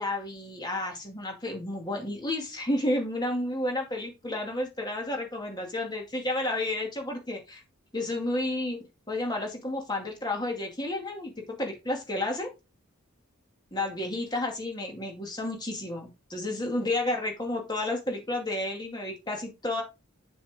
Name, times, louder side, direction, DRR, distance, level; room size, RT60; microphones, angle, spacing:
voice 1, 0.0-7.6 7.9-12.5 13.7-19.8, left 1 dB, 20° left, 2 dB, 2.3 m, -31 dB
7.0 x 7.0 x 3.6 m, 0.26 s
head